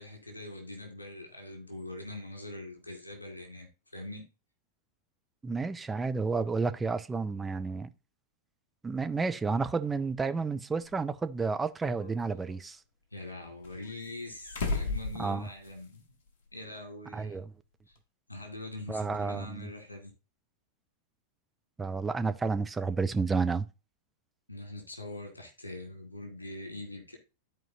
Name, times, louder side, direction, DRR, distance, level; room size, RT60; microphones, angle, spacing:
voice 1, 0.0-4.3 13.1-16.0 16.5-17.4 17.9-18.0 18.3-20.1 24.5-27.2, left 1 dB, 80° left, 2.0 m, -43 dB
voice 2, 5.4-7.9 8.8-12.8 15.2-15.5 17.1-17.5 18.9-19.7 21.8-23.7, right 4 dB, 15° right, 0.6 m, -31 dB
sound 1, 10.8-10.9 11.8-12.7 13.6-16.0 16.3-16.4 18.0-18.1, left 3 dB, 55° left, 1.2 m, -36 dB
13.5 x 4.5 x 2.7 m
figure-of-eight pair, 90°, 0 cm